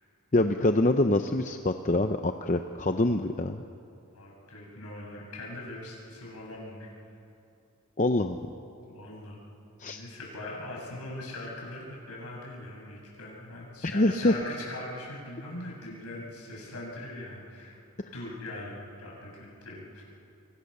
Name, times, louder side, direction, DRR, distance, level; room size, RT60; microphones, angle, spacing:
voice 1, 0.3-3.6 8.0-8.4 9.8-10.0 13.9-14.3, left 2 dB, 35° left, 7 dB, 0.7 m, -25 dB
voice 2, 4.1-6.9 8.8-9.4 9.8-17.8 18.1-20.0, left 1 dB, 85° left, -2 dB, 7.8 m, -41 dB
28.0 x 23.5 x 6.8 m, 2.6 s
head